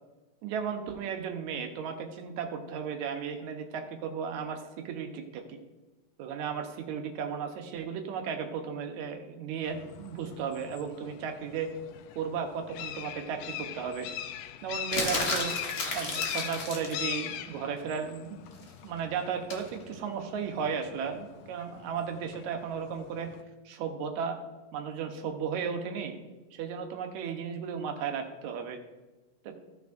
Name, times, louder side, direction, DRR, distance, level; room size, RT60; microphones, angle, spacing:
voice 1, 0.4-5.6 6.2-11.7 12.2-14.1 14.6-15.6 15.9-18.3 18.6-23.3 23.7-24.4 24.7-26.2 26.5-28.8 29.4-29.5, right 6 dB, 75° right, 5 dB, 2.2 m, -35 dB
sound 1, 9.6-23.4, left 10 dB, 90° left, 2.1 m, -42 dB
sound 2, 14.9-17.0 19.5-19.7, left 3 dB, 50° left, 1.1 m, -32 dB
15.5 x 6.0 x 2.5 m, 1.2 s
omnidirectional pair, 3.5 m